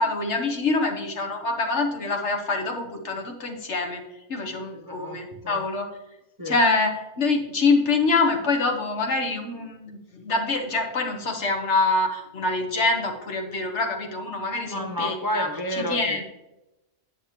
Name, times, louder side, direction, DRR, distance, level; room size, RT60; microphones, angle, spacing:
voice 1, 0.0-5.9 6.4-6.9 7.2-16.2, left 3 dB, 55° left, 3 dB, 1.3 m, -25 dB
voice 2, 4.8-5.6 6.4-6.6 14.6-16.2, equal, 30° right, 1 dB, 0.4 m, -31 dB
8.4 x 7.3 x 2.9 m, 0.93 s
omnidirectional pair, 1.5 m